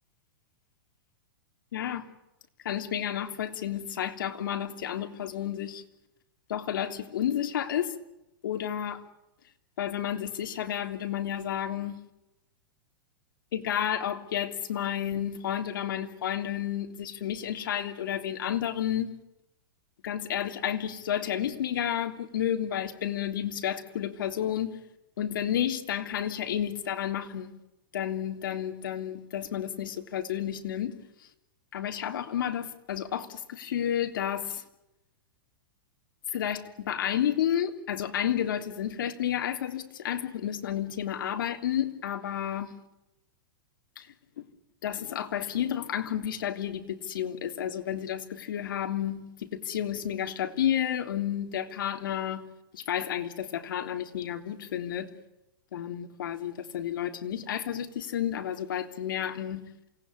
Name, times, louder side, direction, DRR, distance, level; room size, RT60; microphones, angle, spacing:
voice 1, 1.7-2.0 2.6-5.8 6.5-7.9 8.4-9.0 9.8-11.9 13.5-19.1 20.0-24.8 25.2-27.6 27.9-31.0 31.7-34.6 36.3-42.7 44.0-44.1 44.4-44.5 44.8-52.4 52.7-55.1 55.7-59.7, left 10 dB, 75° left, 3.2 m, -31 dB
28.0 x 19.0 x 9.8 m
supercardioid pair, 150°, 11 cm